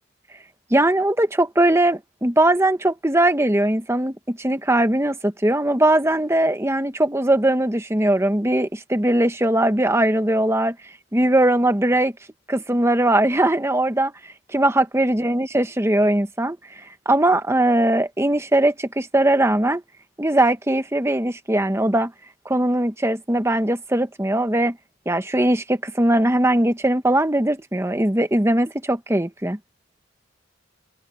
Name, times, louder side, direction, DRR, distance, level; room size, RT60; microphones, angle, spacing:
voice 1, 0.7-10.8 11.1-12.1 12.5-14.1 14.5-19.8 20.2-22.1 22.4-24.8 25.1-29.6, right 1 dB, 15° right, 1.1 m, -20 dB
open air
head